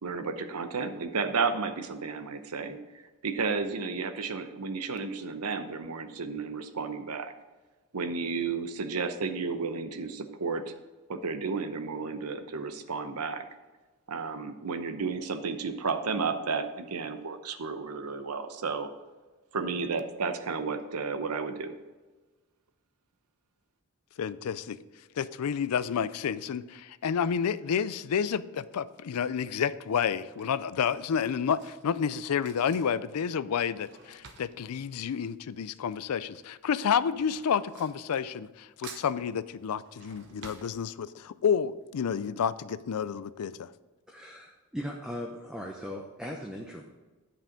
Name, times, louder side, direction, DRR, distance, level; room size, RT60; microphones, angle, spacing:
voice 1, 0.0-2.8 3.2-7.3 7.9-10.6 11.1-13.4 14.1-18.9 19.5-21.8, right 4 dB, 90° right, 9 dB, 0.8 m, -32 dB
voice 2, 24.2-24.8 25.1-43.7, left 7 dB, 90° left, 16 dB, 0.4 m, -30 dB
Drawer open or close / Cutlery silverware, 28.8-29.2 30.0-35.9 36.2-38.6 38.8-41.4 41.8-41.9 42.1-42.2, right 5 dB, 55° right, 1.0 m, -52 dB
voice 3, 44.1-46.8, equal, 5° right, 0 dB, 0.7 m, -38 dB
9.8 x 5.6 x 5.1 m, 1.2 s
head